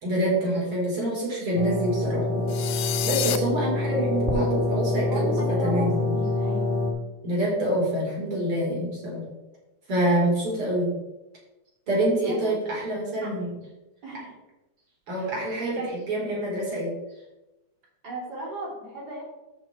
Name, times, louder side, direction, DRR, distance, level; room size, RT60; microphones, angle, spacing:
voice 1, 0.0-2.6 3.0-6.1 7.2-9.2 9.9-10.9 11.9-13.5 15.1-15.7 16.1-16.9, right 1 dB, 80° right, -5 dB, 4.5 m, -26 dB
sound 1, 1.6-6.9, left 2 dB, 25° right, 1.9 m, -26 dB
sound 2, 2.5-3.4, left 12 dB, 75° left, 1.1 m, -28 dB
voice 2, 5.1-6.8 7.6-7.7 10.0-10.1 12.1-12.6 13.2-13.5 14.0-14.4 15.2-16.0 18.0-19.2, right 2 dB, 45° right, -5 dB, 3.6 m, -37 dB
13.0 x 4.5 x 4.5 m, 1.0 s
omnidirectional pair, 2.4 m